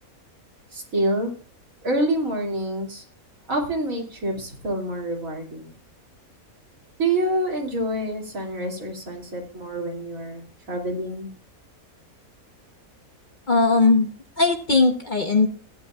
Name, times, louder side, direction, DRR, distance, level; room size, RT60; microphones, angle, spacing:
voice 1, 0.7-1.3 1.8-3.0 3.5-5.7 7.0-11.3, right 1 dB, 65° right, 0 dB, 3.2 m, -27 dB
voice 2, 13.5-14.1 14.4-15.5, left 3 dB, 35° left, 4 dB, 1.1 m, -18 dB
16.0 x 10.0 x 2.4 m, 0.41 s
omnidirectional pair, 1.5 m